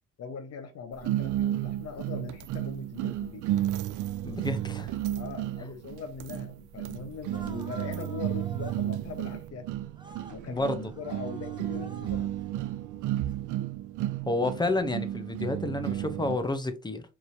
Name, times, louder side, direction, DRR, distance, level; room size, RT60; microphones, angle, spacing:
voice 1, 0.2-3.5 5.1-9.7 10.3-12.3, left 5 dB, 55° left, 0.9 m, -41 dB
sound 1, 1.0-16.5, right 13 dB, 80° right, 0.5 m, -33 dB
voice 2, 4.2-4.9 10.5-10.9 14.2-17.0, left 2 dB, 15° left, 0.7 m, -30 dB
sound 2, 7.3-8.8 10.0-10.4 10.8-12.5 13.2-13.3, right 2 dB, 15° right, 0.8 m, -49 dB
4.8 x 2.7 x 2.6 m
cardioid pair, 90°, 30 cm